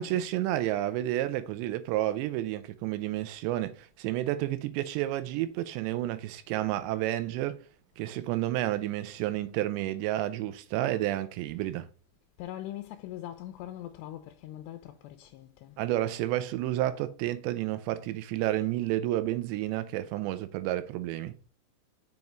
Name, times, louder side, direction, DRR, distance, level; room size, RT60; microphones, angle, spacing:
voice 1, 0.0-7.6 8.0-11.9 15.8-21.4, right 14 dB, 80° right, 2.8 m, -30 dB
voice 2, 12.4-15.8, left 13 dB, 85° left, 2.6 m, -42 dB
7.1 x 5.4 x 3.0 m
omnidirectional pair, 5.2 m